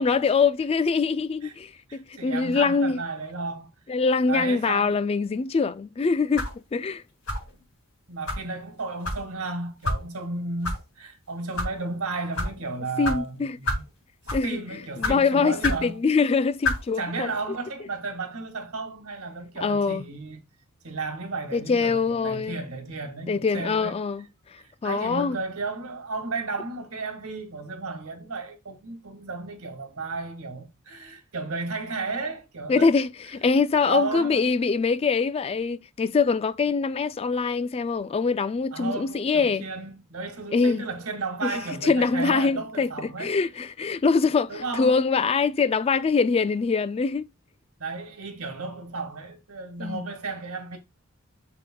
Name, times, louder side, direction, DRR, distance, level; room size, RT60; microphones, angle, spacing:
voice 1, 0.0-3.0 3.9-7.0 13.0-13.6 14.3-14.6 15.0-17.3 19.6-20.1 21.5-22.6 23.3-24.3 24.8-25.4 32.7-39.6 40.5-40.8 41.4-47.3 49.8-50.1, left 4 dB, 25° left, 0.3 m, -24 dB
voice 2, 1.9-3.7 4.3-5.0 8.1-13.8 14.4-16.0 17.0-20.4 20.8-24.0 24.6-32.9 33.8-34.5 38.7-43.4 44.5-44.9 47.8-50.8, right 3 dB, 85° right, 1.9 m, -33 dB
sound 1, 6.3-6.6 7.3-7.5 8.3-8.4 9.0-9.2 9.8-10.0 10.6-10.8 11.4-11.7 12.3-12.5 13.0-13.2 13.6-13.9 14.2-14.5 15.0-15.2 15.6-15.8 16.6-16.8, left 2 dB, 70° left, 4.3 m, -27 dB
6.9 x 6.9 x 2.2 m
head